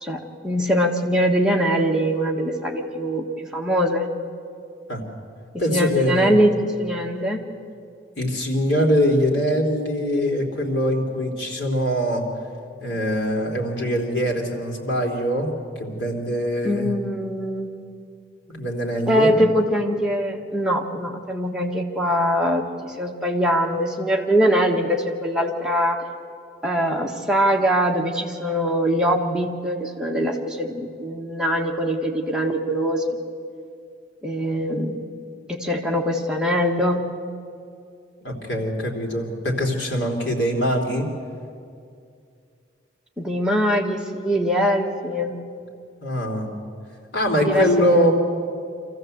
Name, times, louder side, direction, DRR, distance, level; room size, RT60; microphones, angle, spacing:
voice 1, 0.0-4.1 5.5-7.4 16.6-17.7 19.1-26.0 26.6-33.2 34.2-35.0 35.5-37.1 43.2-45.4 47.4-48.1, equal, 5° right, -1 dB, 1.6 m, -22 dB
voice 2, 5.6-6.4 8.2-12.2 12.8-15.5 15.8-16.9 18.5-19.4 38.2-41.1 46.0-46.5 47.1-48.1, equal, 90° left, 0 dB, 3.2 m, -23 dB
25.0 x 15.0 x 7.9 m, 2.4 s
head